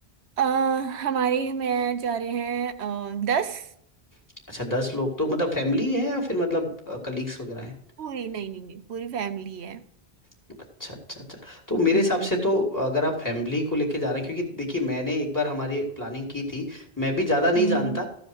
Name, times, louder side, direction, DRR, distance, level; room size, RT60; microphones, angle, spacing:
voice 1, 0.4-3.7 8.0-9.8 11.9-12.4 17.6-18.0, right 7 dB, 85° right, 1.0 m, -28 dB
voice 2, 4.5-7.7 10.8-18.1, left 1 dB, 15° left, 2.6 m, -26 dB
14.5 x 5.0 x 6.2 m
omnidirectional pair, 1.1 m